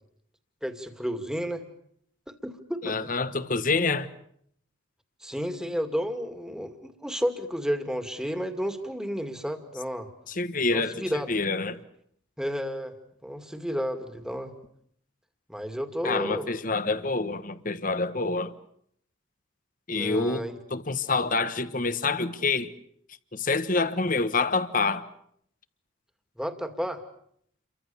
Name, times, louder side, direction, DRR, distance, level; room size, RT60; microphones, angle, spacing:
voice 1, 0.6-1.6 2.3-3.1 5.2-10.1 10.7-11.3 12.4-12.9 13.2-14.5 15.5-16.5 19.9-20.6 26.4-27.0, equal, 5° right, 2.3 m, -32 dB
voice 2, 2.8-4.1 10.4-11.8 16.0-18.5 19.9-22.7 23.3-25.1, left 3 dB, 40° left, 1.3 m, -27 dB
30.0 x 24.0 x 7.1 m
head